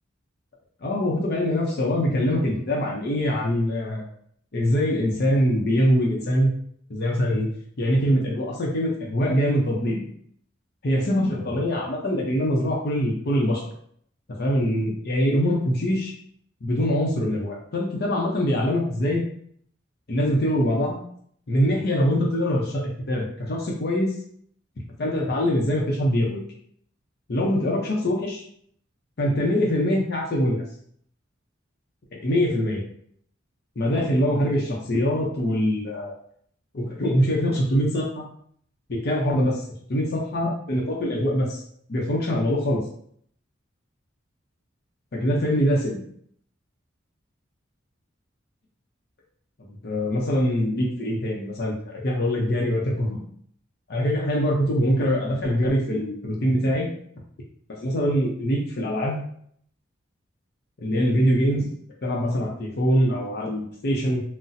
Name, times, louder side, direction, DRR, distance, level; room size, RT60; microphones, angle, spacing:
voice 1, 0.8-4.1 4.5-6.5 6.9-7.5 7.8-10.0 10.8-13.6 14.4-16.1 16.6-19.2 20.1-21.0 21.5-24.1 25.0-26.4 27.3-28.4 29.2-30.6 32.2-32.8 33.8-36.1 36.7-38.2 38.9-39.6 39.9-41.6 41.9-42.8 45.1-46.0 49.6-53.2 53.9-56.9 57.8-59.2 60.8-61.7 62.0-64.2, equal, 55° left, -2 dB, 0.6 m, -23 dB
4.0 x 2.0 x 2.6 m, 0.63 s
head